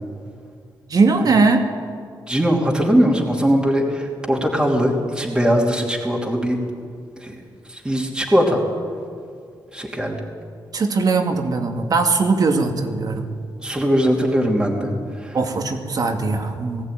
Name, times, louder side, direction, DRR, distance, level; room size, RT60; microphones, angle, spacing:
voice 1, 0.9-1.7 10.7-13.3 15.3-16.9, right 4 dB, 55° right, 4 dB, 2.3 m, -19 dB
voice 2, 2.3-6.6 7.2-7.4 7.7-8.6 9.7-10.2 13.6-14.9 15.2-15.4, equal, 10° right, -2 dB, 3.0 m, -20 dB
19.5 x 15.5 x 9.4 m, 2.2 s
cardioid pair, 105°, 8 cm